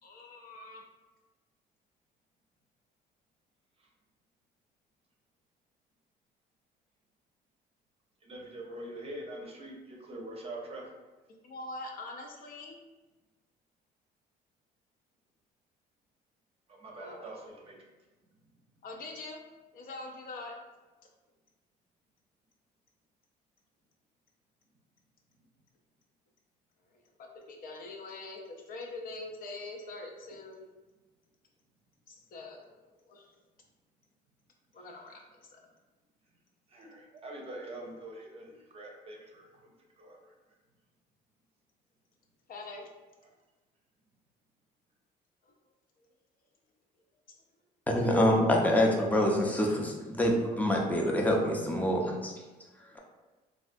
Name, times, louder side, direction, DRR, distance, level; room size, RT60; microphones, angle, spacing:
voice 1, 0.0-0.8 11.3-12.8 17.0-17.3 18.8-19.4 19.7-20.5 27.2-30.7 32.1-33.3 34.7-35.6 42.5-42.9 45.4-45.5, left 2 dB, 60° left, 1 dB, 0.6 m, -44 dB
voice 2, 8.2-10.9 16.7-17.8 36.7-39.7 40.0-40.3, right 1 dB, 35° right, 0 dB, 0.6 m, -44 dB
voice 3, 47.9-52.3, left 1 dB, 10° left, 0 dB, 0.5 m, -26 dB
3.3 x 2.3 x 2.5 m, 1.2 s
cardioid pair, 110°, 17 cm